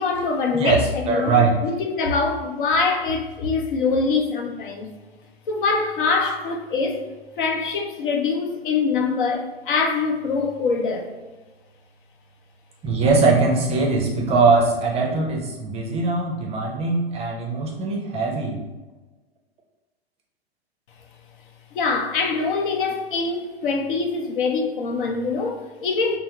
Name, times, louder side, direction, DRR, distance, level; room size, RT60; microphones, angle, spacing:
voice 1, 0.0-1.3 1.6-4.9 5.5-7.1 7.4-11.1 21.7-26.2, left 4 dB, 55° left, 4 dB, 0.7 m, -24 dB
voice 2, 1.1-1.5 12.8-18.6, right 3 dB, 20° right, 0 dB, 0.6 m, -21 dB
5.4 x 2.0 x 2.8 m, 1.2 s
figure-of-eight pair, 100°, 31 cm